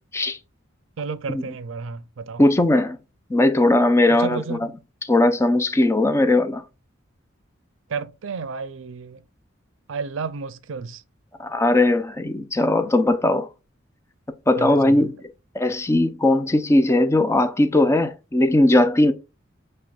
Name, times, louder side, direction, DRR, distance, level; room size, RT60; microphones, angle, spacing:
voice 1, 1.0-2.4 4.1-4.7 7.9-9.2 9.9-11.0 14.6-15.1, right 5 dB, 70° right, 0.5 m, -32 dB
voice 2, 2.4-3.0 3.3-4.6 5.0-6.6 11.4-13.5 14.5-15.2 15.5-19.1, left 1 dB, 15° left, 0.5 m, -19 dB
6.8 x 3.3 x 2.4 m
head